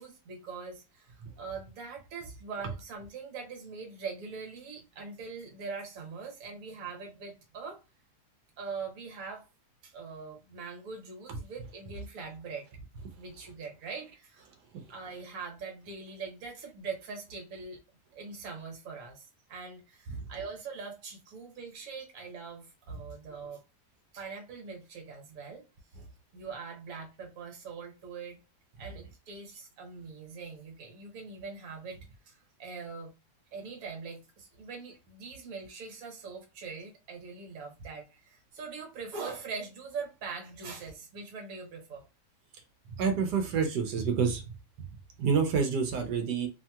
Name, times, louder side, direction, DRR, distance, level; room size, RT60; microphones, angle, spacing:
voice 1, 0.0-7.8 8.6-9.4 9.8-12.7 13.2-14.5 14.9-17.8 18.1-23.6 24.1-25.6 26.3-28.4 28.8-32.0 32.2-33.1 33.5-42.0, right 5 dB, 60° right, 1.3 m, -42 dB
voice 2, 43.0-44.4 45.2-46.5, right 6 dB, 90° right, 1.2 m, -28 dB
3.0 x 2.7 x 2.2 m
omnidirectional pair, 1.7 m